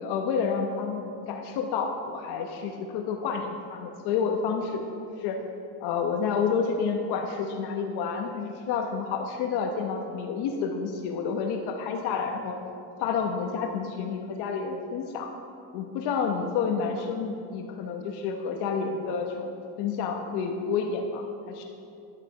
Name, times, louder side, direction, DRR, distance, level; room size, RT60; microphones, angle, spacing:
voice 1, 0.0-4.8 5.2-5.4 5.8-12.6 13.0-15.3 15.7-19.5 19.8-21.6, left 5 dB, 55° left, 3 dB, 1.2 m, -29 dB
14.5 x 12.0 x 4.9 m, 2.6 s
cardioid pair, 170°, 46 cm